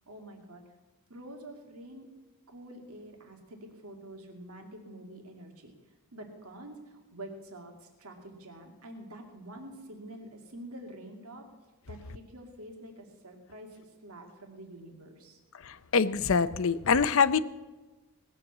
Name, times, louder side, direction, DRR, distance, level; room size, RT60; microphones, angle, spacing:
voice 1, 0.1-0.6 1.1-2.1 2.5-5.7 6.1-11.4 11.9-15.4, right 1 dB, 80° right, 3 dB, 2.4 m, -47 dB
voice 2, 15.6-17.4, left 5 dB, 60° left, 15 dB, 0.6 m, -25 dB
19.0 x 7.5 x 7.3 m, 1.2 s
head